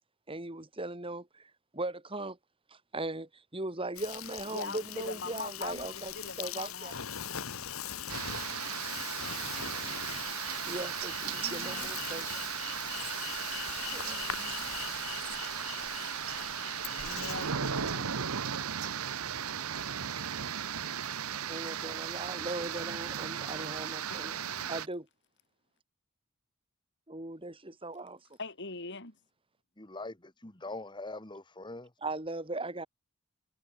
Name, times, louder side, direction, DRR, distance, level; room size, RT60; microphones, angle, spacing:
voice 1, 0.3-2.4 2.7-6.1 6.4-6.9 10.6-12.4 13.9-14.2 21.5-24.4 24.7-25.1 27.1-28.2 32.0-32.9, right 2 dB, 25° right, 3.4 m, -39 dB
Insect, 3.9-17.5, left 9 dB, 80° left, 2.1 m, -41 dB
voice 2, 4.5-7.3 11.4-11.9 14.0-14.8 17.0-18.2 24.1-24.7 28.4-29.2, left 3 dB, 55° left, 4.8 m, -43 dB
sound 1, 8.1-24.9, right 8 dB, 90° right, 1.0 m, -36 dB
voice 3, 29.8-31.9, left 2 dB, 20° left, 1.9 m, -43 dB
head